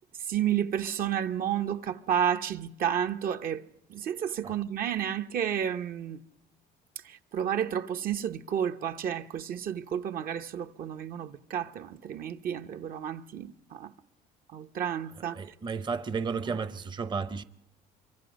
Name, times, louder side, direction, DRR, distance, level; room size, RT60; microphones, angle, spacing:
voice 1, 0.2-6.2 7.0-13.9 14.5-15.4, right 9 dB, 60° right, 0.9 m, -31 dB
voice 2, 15.3-17.4, right 5 dB, 25° right, 0.7 m, -33 dB
25.0 x 24.0 x 5.2 m
cardioid pair, 110°, 17 cm